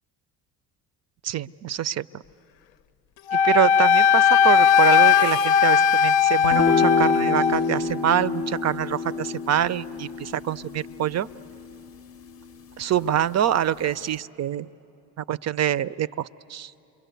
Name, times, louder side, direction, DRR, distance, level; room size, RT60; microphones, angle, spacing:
voice 1, 1.2-2.2 3.3-11.3 12.8-14.7 15.3-16.7, right 10 dB, 35° right, 19 dB, 0.5 m, -25 dB
Wind instrument woodwind instrument, 3.3-7.6, left 7 dB, 65° left, 0.7 m, -18 dB
sound 1, 6.4-13.0, left 5 dB, 30° left, 0.7 m, -28 dB
28.0 x 22.5 x 8.1 m, 2.8 s
hypercardioid pair, 55°, 50 cm